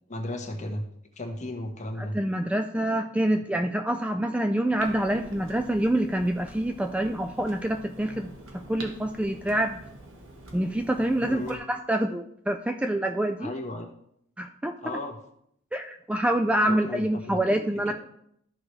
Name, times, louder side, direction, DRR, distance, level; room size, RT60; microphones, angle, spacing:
voice 1, 0.1-0.8 1.2-2.2 11.3-11.6 13.4-13.9 14.8-15.2 16.7-17.6 17.9-18.0, left 1 dB, 35° left, 2 dB, 1.3 m, -35 dB
voice 2, 2.0-9.8 10.5-13.5 14.4-14.8 15.7-17.9, right 1 dB, 5° right, 6 dB, 0.3 m, -26 dB
Clock, 4.8-11.6, right 1 dB, 75° right, 1.5 m, -45 dB
14.0 x 4.9 x 3.2 m, 0.72 s
head